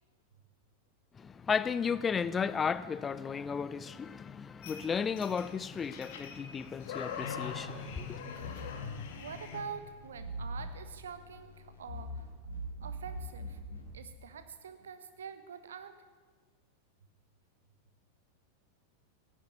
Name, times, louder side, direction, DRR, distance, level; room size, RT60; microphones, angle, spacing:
voice 1, 1.2-8.2, left 6 dB, 20° left, 0.5 m, -34 dB
sound 1, 4.6-9.6, left 6 dB, 55° left, 2.4 m, -43 dB
sound 2, 7.1-13.9, equal, 80° left, 4.1 m, -44 dB
voice 2, 9.2-12.3 12.8-13.6 13.9-15.9, right 7 dB, 65° right, 1.3 m, -45 dB
15.5 x 9.5 x 9.7 m
figure-of-eight pair, 90°, 0 cm